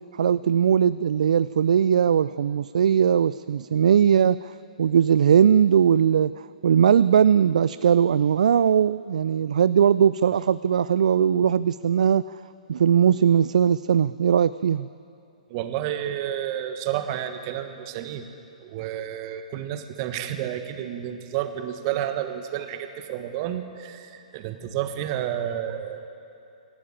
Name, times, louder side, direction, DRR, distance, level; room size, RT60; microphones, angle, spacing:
voice 1, 0.2-4.5 4.8-6.3 6.6-12.2 12.7-14.9, right 8 dB, 65° right, 16 dB, 0.4 m, -19 dB
voice 2, 15.5-18.3 18.6-26.1, right 11 dB, 40° right, 8 dB, 1.6 m, -30 dB
26.5 x 12.5 x 9.0 m, 2.6 s
figure-of-eight pair, 125°, 4 cm